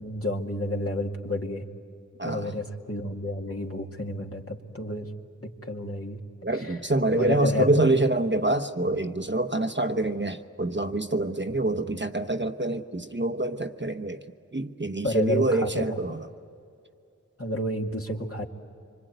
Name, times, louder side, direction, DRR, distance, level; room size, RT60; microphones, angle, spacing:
voice 1, 0.0-1.6 2.2-5.1 5.4-6.2 6.5-6.8 7.1-8.0 11.5-12.0 15.0-16.2 17.4-18.5, left 1 dB, 45° left, 1 dB, 2.3 m, -31 dB
voice 2, 2.2-2.5 6.4-14.2 14.5-16.2, right 2 dB, 35° right, 7 dB, 1.1 m, -26 dB
25.5 x 25.5 x 9.2 m, 2.5 s
wide cardioid pair, 45°, 31 cm